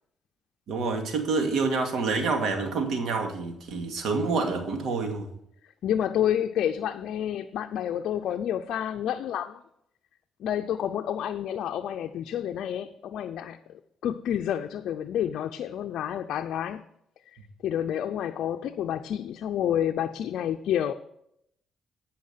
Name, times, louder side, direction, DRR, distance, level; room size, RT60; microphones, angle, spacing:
voice 1, 0.7-5.3, right 4 dB, 70° right, 2.2 m, -27 dB
voice 2, 5.8-9.6 10.4-16.8 17.6-20.9, left 10 dB, 75° left, 0.5 m, -29 dB
15.0 x 5.8 x 5.7 m
cardioid pair, 90°, 0 cm